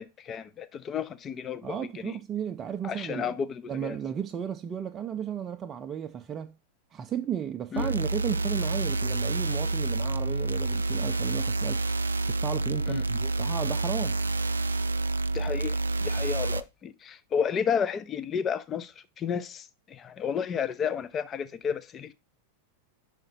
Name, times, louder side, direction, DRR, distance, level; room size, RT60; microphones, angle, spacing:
voice 1, 0.0-2.2 2.8-4.0 7.7-7.9 12.9-13.0 15.3-22.1, left 7 dB, 25° left, 0.6 m, -32 dB
voice 2, 1.6-3.4 3.7-6.6 6.9-11.8 12.3-14.2, right 9 dB, 25° right, 0.5 m, -34 dB
sound 1, 7.8-16.6, right 2 dB, 75° right, 0.3 m, -28 dB
5.8 x 5.1 x 5.1 m
figure-of-eight pair, 90°, 0 cm